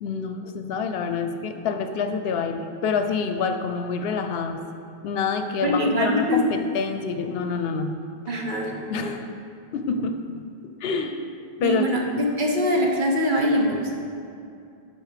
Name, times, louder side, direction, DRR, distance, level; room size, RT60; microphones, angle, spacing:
voice 1, 0.0-4.7 5.0-8.0 8.9-9.3 9.7-11.3 11.6-12.3, left 5 dB, 75° left, 7 dB, 0.8 m, -27 dB
voice 2, 5.6-6.4 8.3-9.1 11.6-12.0 12.4-13.9, equal, 55° right, 0 dB, 1.1 m, -23 dB
9.6 x 4.4 x 4.9 m, 2.5 s
omnidirectional pair, 1.0 m